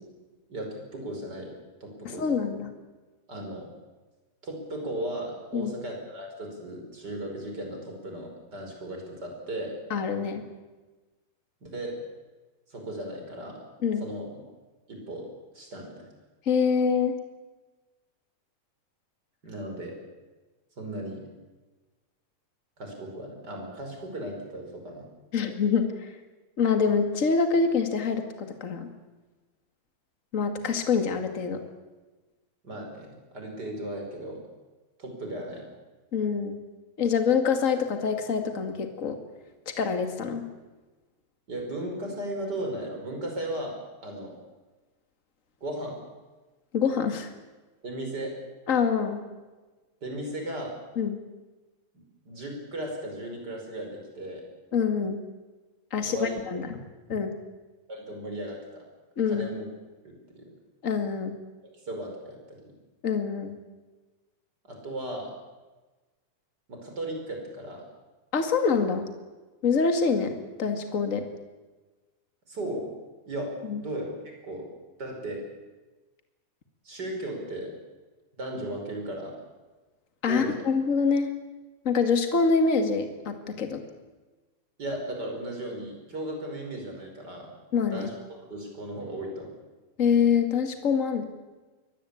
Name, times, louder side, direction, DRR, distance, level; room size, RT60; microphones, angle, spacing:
voice 1, 0.5-1.5 1.8-2.4 3.3-3.7 4.4-9.7 11.6-12.0 12.7-13.6 14.0-14.3 14.9-15.3 15.5-16.0 19.4-20.0 20.8-21.2 22.8-25.1 32.6-34.4 35.0-35.6 41.5-44.4 45.6-46.0 47.8-48.4 50.0-50.7 52.2-54.4 56.1-56.6 57.9-58.8 59.3-59.7 60.0-60.5 61.6-62.6 64.6-65.3 66.7-67.8 72.5-72.9 73.3-73.5 73.8-74.7 75.0-75.4 76.8-77.8 78.4-79.3 80.3-80.5 84.8-87.5 87.9-89.5, right 1 dB, 25° right, 2 dB, 5.9 m, -36 dB
voice 2, 2.0-2.7 5.5-5.7 9.9-10.4 13.8-14.1 16.4-17.2 25.3-26.1 26.6-28.9 30.3-31.6 36.1-36.6 37.0-39.2 39.6-40.4 46.7-47.3 48.7-49.2 50.9-51.2 54.7-55.2 55.9-56.8 57.1-57.3 59.2-59.5 60.8-61.4 63.0-63.6 68.3-69.1 69.6-71.2 73.7-73.8 80.2-81.3 81.8-83.8 87.7-88.1 90.0-91.2, left 5 dB, 30° left, 6 dB, 1.7 m, -25 dB
23.0 x 19.5 x 8.6 m, 1.2 s
omnidirectional pair, 4.4 m